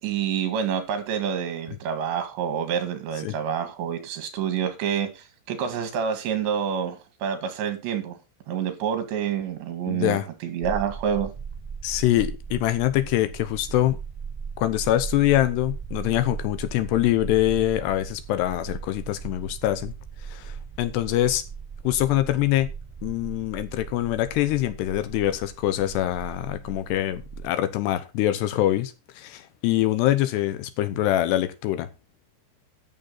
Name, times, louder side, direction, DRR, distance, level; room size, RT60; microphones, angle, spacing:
voice 1, 0.0-8.2 8.5-11.3, right 8 dB, 75° right, 4.2 m, -28 dB
voice 2, 9.9-10.3 11.8-14.0 14.6-19.9 20.3-21.4 21.8-22.7 23.0-31.9, left 14 dB, 80° left, 2.9 m, -24 dB
sound 1, 10.6-27.5, right 6 dB, 10° right, 1.2 m, -38 dB
13.0 x 7.0 x 4.1 m
omnidirectional pair, 5.2 m